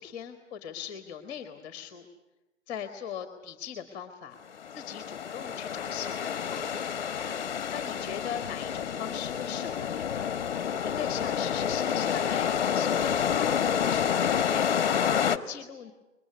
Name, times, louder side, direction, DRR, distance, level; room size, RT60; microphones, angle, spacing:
voice 1, 0.0-2.0 2.7-4.4 4.7-6.9 7.7-10.3 10.8-13.5 13.8-15.9, left 8 dB, 15° left, 7 dB, 1.5 m, -40 dB
sound 1, 4.6-15.4, left 8 dB, 35° left, 1.1 m, -29 dB
sound 2, 7.0-9.1, right 1 dB, 25° right, 2.7 m, -53 dB
23.0 x 22.0 x 9.6 m, 0.98 s
hypercardioid pair, 155°, 39 cm